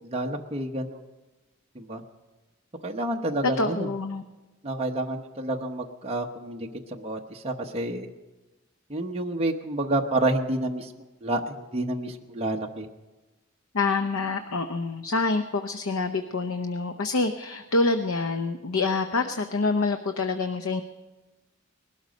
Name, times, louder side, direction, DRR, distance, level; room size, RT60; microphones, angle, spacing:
voice 1, 0.1-1.0 1.7-2.0 2.8-3.9 4.6-8.1 8.9-10.9 11.2-12.9, right 1 dB, 30° right, 1 dB, 0.9 m, -29 dB
voice 2, 3.4-4.2 13.7-20.8, left 3 dB, 90° left, 8 dB, 0.7 m, -26 dB
20.0 x 12.5 x 5.2 m, 1.2 s
head